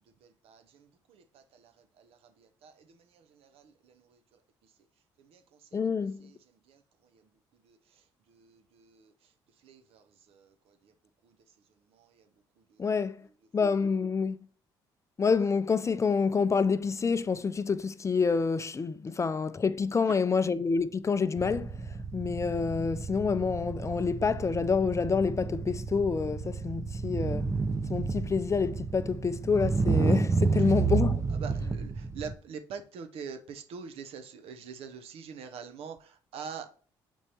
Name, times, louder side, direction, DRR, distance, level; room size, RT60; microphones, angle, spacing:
voice 1, 0.0-4.7 5.2-5.9 6.2-10.9 11.2-12.3 12.6-13.3 20.0-20.4 30.6-30.7 31.3-36.7, right 6 dB, 70° right, 0.8 m, -46 dB
voice 2, 5.7-6.2 12.8-13.2 13.5-14.4 15.2-21.7 22.1-27.5 27.9-31.3, left 5 dB, 30° left, 0.4 m, -27 dB
sound 1, 21.4-32.3, right 4 dB, 25° right, 0.6 m, -30 dB
7.2 x 4.5 x 2.9 m
supercardioid pair, 60°, 10 cm